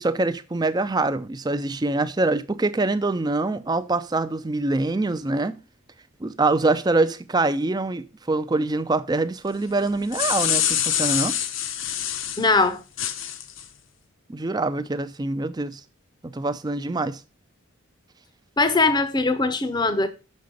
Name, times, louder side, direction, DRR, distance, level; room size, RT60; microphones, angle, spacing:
voice 1, 0.0-5.6 6.2-11.4 14.3-15.8 16.2-17.2, right 2 dB, 20° right, 0.4 m, -24 dB
sound 1, 9.9-12.4 13.0-13.6, left 10 dB, 60° left, 0.8 m, -25 dB
voice 2, 12.4-12.8 18.6-20.1, left 3 dB, 20° left, 0.7 m, -21 dB
6.7 x 5.4 x 6.4 m
head